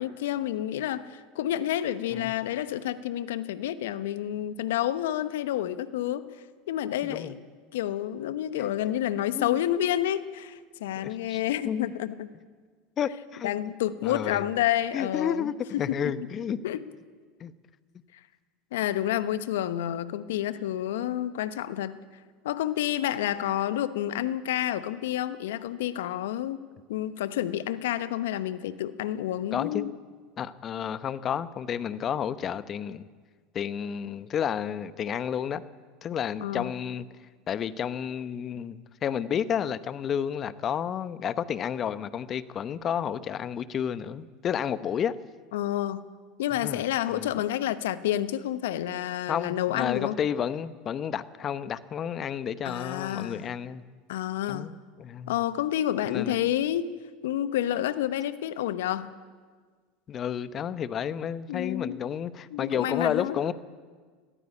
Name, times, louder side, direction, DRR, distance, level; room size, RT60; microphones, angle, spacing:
voice 1, 0.0-6.3 6.7-7.4 7.7-12.3 13.4-16.1 16.6-16.9 18.7-22.0 22.4-26.6 26.9-29.9 36.4-36.7 45.5-46.0 46.4-50.2 52.6-53.5 54.1-54.7 55.3-56.9 57.2-59.1 61.5-62.0 62.5-63.4, left 12 dB, 75° left, 13 dB, 1.0 m, -29 dB
voice 2, 7.0-7.3 8.6-8.7 9.3-9.6 11.0-11.4 11.6-11.9 13.0-13.7 14.0-14.4 14.9-16.6 17.4-17.5 29.5-29.9 30.4-33.0 33.5-35.6 36.0-37.0 37.5-45.1 46.6-46.8 47.1-47.3 49.3-53.8 54.5-55.4 56.1-56.4 60.1-63.5, left 8 dB, 40° left, 14 dB, 1.0 m, -31 dB
20.0 x 15.0 x 8.6 m, 1.5 s
hypercardioid pair, 85°, 0 cm